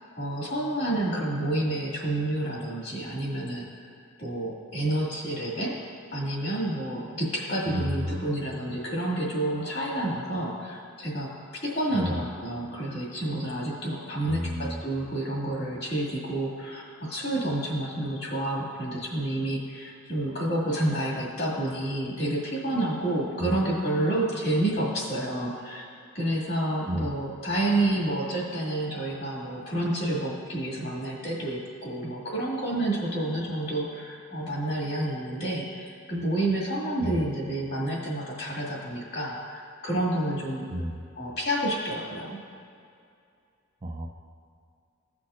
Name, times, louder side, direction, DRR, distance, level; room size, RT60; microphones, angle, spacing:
voice 1, 0.2-3.9 4.2-5.8 6.1-25.8 26.1-40.7 41.2-42.4, right 1 dB, 50° left, -4 dB, 2.0 m, -29 dB
voice 2, 7.7-8.3 11.9-12.3 14.3-14.8 23.4-23.6 26.9-27.1 37.0-37.2 40.7-41.0 43.8-44.1, equal, 25° right, 2 dB, 0.5 m, -31 dB
16.5 x 5.9 x 2.5 m, 2.4 s
head